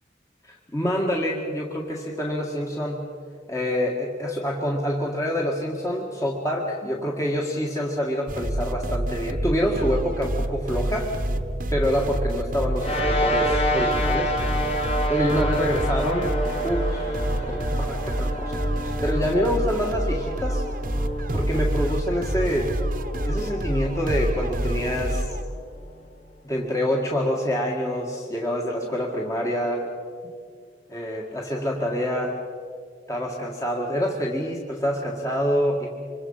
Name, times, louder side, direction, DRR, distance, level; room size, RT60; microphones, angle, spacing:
voice 1, 0.4-3.1 3.5-11.2 11.7-14.3 15.1-20.6 21.3-22.7 23.2-25.3 26.4-29.9 30.9-32.4 33.1-35.9, equal, 15° left, -1 dB, 1.8 m, -26 dB
sound 1, 8.3-25.4, right 1 dB, 50° right, 1.2 m, -28 dB
sound 2, 12.8-25.5, equal, 35° left, 2.2 m, -29 dB
26.5 x 23.5 x 5.6 m, 2.2 s
head